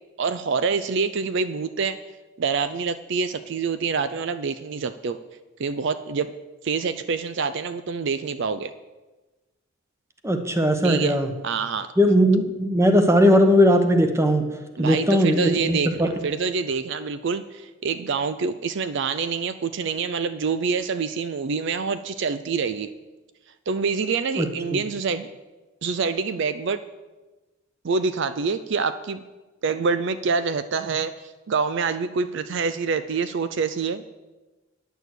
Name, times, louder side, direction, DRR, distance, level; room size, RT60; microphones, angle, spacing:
voice 1, 0.2-2.0 2.4-5.2 5.6-6.3 6.6-8.7 10.8-11.2 11.4-11.9 14.8-22.9 23.7-25.3 25.8-26.8 27.8-29.2 29.6-34.0, right 5 dB, 60° right, 12 dB, 0.4 m, -26 dB
voice 2, 10.2-11.3 12.0-14.4 14.8-16.1 24.4-24.8, equal, 15° right, 7 dB, 0.9 m, -19 dB
10.0 x 6.9 x 7.9 m, 1.2 s
head